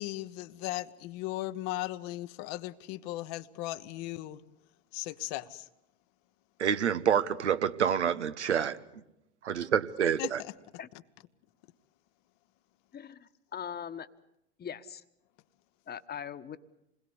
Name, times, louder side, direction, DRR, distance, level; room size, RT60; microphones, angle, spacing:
voice 1, 0.0-4.4 4.9-5.7 10.2-10.5, left 16 dB, 50° left, 1.2 m, -37 dB
voice 2, 6.6-8.8 9.4-10.4, right 8 dB, 75° right, 1.2 m, -27 dB
voice 3, 12.9-14.1 14.6-15.0 15.9-16.6, left 8 dB, 30° left, 1.4 m, -41 dB
28.0 x 21.0 x 8.2 m
figure-of-eight pair, 70°, 35 cm